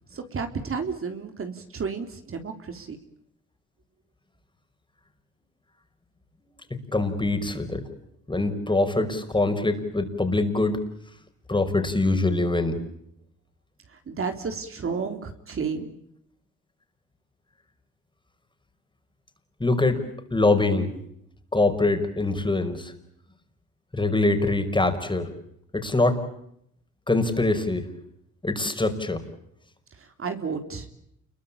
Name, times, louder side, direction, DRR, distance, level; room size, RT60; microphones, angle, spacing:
voice 1, 0.1-3.0 13.9-15.9 29.9-30.9, right 5 dB, 45° right, 6 dB, 3.7 m, -32 dB
voice 2, 6.7-7.8 8.3-10.8 11.5-12.8 19.6-20.0 20.3-20.9 21.5-22.9 23.9-25.3 25.7-26.2 27.1-27.9 28.4-29.2, left 2 dB, 15° left, 7 dB, 5.4 m, -23 dB
29.0 x 22.5 x 8.7 m, 0.75 s
cardioid pair, 90°, 30 cm